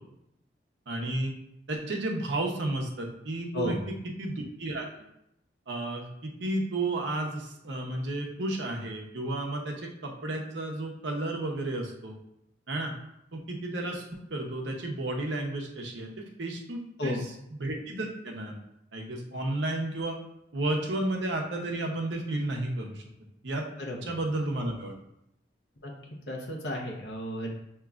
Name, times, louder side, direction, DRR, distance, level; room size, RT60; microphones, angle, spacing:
voice 1, 0.9-1.3 1.7-3.8 4.2-4.9 5.7-12.2 12.7-12.9 13.3-14.0 14.3-17.2 17.5-18.6 18.9-20.2 20.5-23.0 23.4-23.6 24.0-24.9, right 2 dB, 75° right, 1 dB, 0.8 m, -32 dB
voice 2, 23.8-24.2 25.8-27.5, left 1 dB, 70° left, 0 dB, 0.9 m, -33 dB
6.7 x 2.9 x 2.4 m, 0.79 s
head